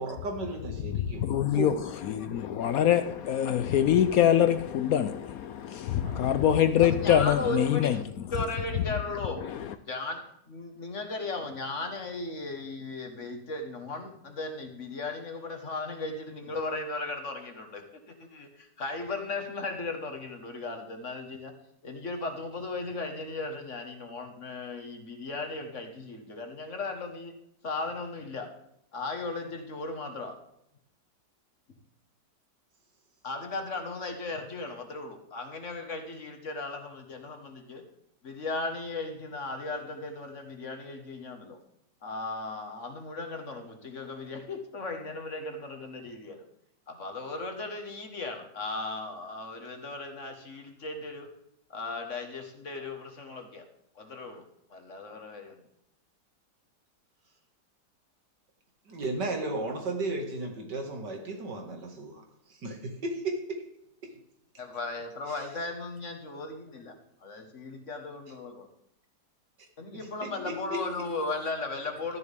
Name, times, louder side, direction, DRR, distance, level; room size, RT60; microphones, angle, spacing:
voice 1, 0.0-1.3 1.5-1.7 6.0-6.4 58.9-62.2 62.6-63.6 69.9-70.8, right 2 dB, 80° right, 2.6 m, -34 dB
voice 2, 1.2-8.0 9.5-9.6, left 10 dB, 70° left, 0.9 m, -24 dB
voice 3, 6.8-8.0 8.3-9.4 9.9-21.5 21.8-27.4 27.6-28.5 28.9-30.3 33.2-37.8 38.2-41.6 42.0-46.4 46.9-51.3 51.7-53.7 53.9-55.6 64.6-67.0 67.2-68.7 69.8-72.2, left 3 dB, 45° left, 1.7 m, -36 dB
13.0 x 10.5 x 3.5 m
omnidirectional pair, 1.8 m